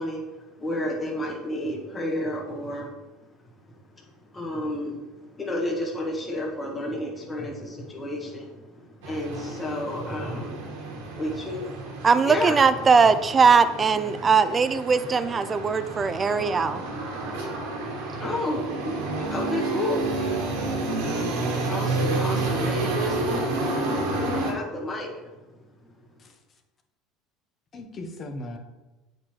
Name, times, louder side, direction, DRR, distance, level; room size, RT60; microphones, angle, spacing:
voice 1, 0.0-3.3 3.7-12.6 14.2-14.3 15.5-23.4 23.7-25.3 25.8-25.9, left 1 dB, 20° left, -1 dB, 1.4 m, -33 dB
sound 1, 9.0-24.5, right 2 dB, 85° right, 1.3 m, -30 dB
voice 2, 12.0-16.8, right 5 dB, 25° right, 12 dB, 0.4 m, -20 dB
voice 3, 26.2-26.6 27.7-28.6, left 1 dB, 35° left, 4 dB, 1.0 m, -38 dB
8.3 x 4.3 x 3.2 m, 1.1 s
supercardioid pair, 100°, 0 cm